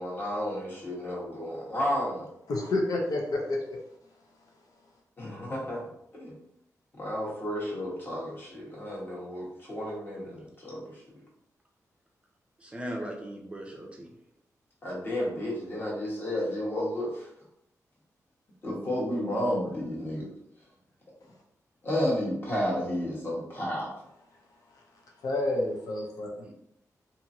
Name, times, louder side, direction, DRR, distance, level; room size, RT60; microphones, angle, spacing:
voice 1, 0.0-2.3 5.2-5.9 6.2-6.3 6.9-11.0 14.8-17.3 18.6-20.3 21.8-23.9, equal, 35° left, -5 dB, 1.2 m, -32 dB
voice 2, 2.5-3.8 25.2-26.3, left 2 dB, 85° left, 0 dB, 0.6 m, -29 dB
voice 3, 12.6-14.1 26.4-26.5, right 1 dB, 20° right, 0 dB, 0.5 m, -38 dB
2.8 x 2.5 x 2.7 m, 0.75 s
wide cardioid pair, 115°, 6 cm